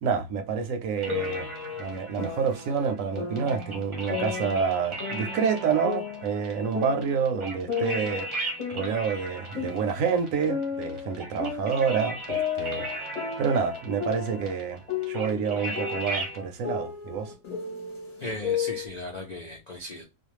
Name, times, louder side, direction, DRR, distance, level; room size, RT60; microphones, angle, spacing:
voice 1, 0.0-1.5 1.8-8.4 8.7-13.1 13.4-17.3, right 6 dB, 70° right, 0.9 m, -28 dB
sound 1, 1.0-16.4, right 1 dB, 30° right, 0.6 m, -38 dB
sound 2, 1.1-2.7 3.2-4.7 5.0-7.3 7.7-10.1 10.5-14.6 14.9-18.9, left 6 dB, 35° left, 0.8 m, -34 dB
voice 2, 18.2-20.0, left 1 dB, 70° left, 0.4 m, -37 dB
2.5 x 2.2 x 3.0 m
omnidirectional pair, 1.5 m